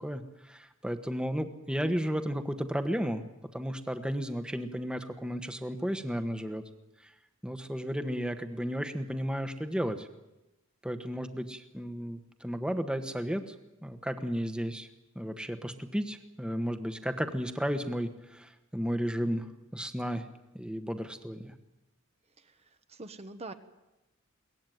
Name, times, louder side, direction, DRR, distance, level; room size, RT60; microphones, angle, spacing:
voice 1, 0.0-3.2 3.5-6.6 7.4-10.1 10.8-13.5 13.8-14.9 15.1-20.3 20.5-21.5, equal, 5° right, 9 dB, 1.3 m, -33 dB
voice 2, 22.4-23.5, right 2 dB, 30° right, 9 dB, 1.1 m, -45 dB
23.0 x 18.0 x 9.3 m, 0.98 s
head